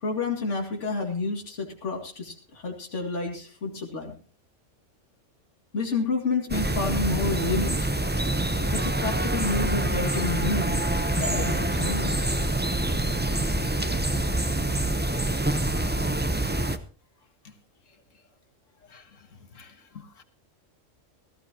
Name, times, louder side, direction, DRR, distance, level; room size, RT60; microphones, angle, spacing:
voice 1, 0.0-4.1 5.7-7.9 8.7-10.8 11.2-12.1, left 4 dB, 70° left, 2.7 m, -29 dB
sound 1, 6.5-16.8, right 1 dB, 10° right, 0.6 m, -26 dB
voice 2, 18.9-20.2, left 6 dB, 85° left, 1.9 m, -50 dB
18.0 x 14.5 x 2.9 m
omnidirectional pair, 1.3 m